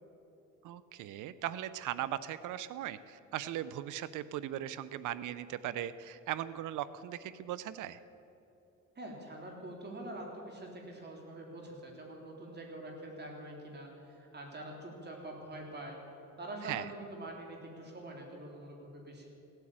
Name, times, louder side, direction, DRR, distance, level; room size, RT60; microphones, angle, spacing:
voice 1, 0.6-8.0 16.6-16.9, right 12 dB, 80° right, 15 dB, 0.6 m, -38 dB
voice 2, 9.0-16.0 16.4-19.3, right 1 dB, 35° right, 0 dB, 3.7 m, -45 dB
17.0 x 9.2 x 8.7 m, 2.9 s
cardioid pair, 90°, 30 cm